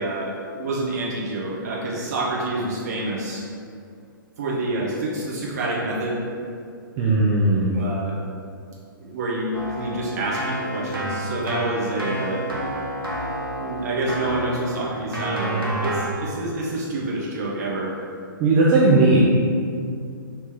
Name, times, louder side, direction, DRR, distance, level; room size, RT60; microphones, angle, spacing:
voice 1, 0.0-3.5 4.4-6.2 7.7-8.2 9.0-12.4 13.6-17.9, right 2 dB, 45° right, -5 dB, 0.9 m, -27 dB
voice 2, 7.0-7.7 18.4-19.2, right 2 dB, 25° right, -6 dB, 0.4 m, -17 dB
Keyboard (musical), 9.5-16.1, right 1 dB, 80° right, 0.9 m, -29 dB
2.9 x 2.9 x 3.5 m, 2.3 s
figure-of-eight pair, 120°, 12 cm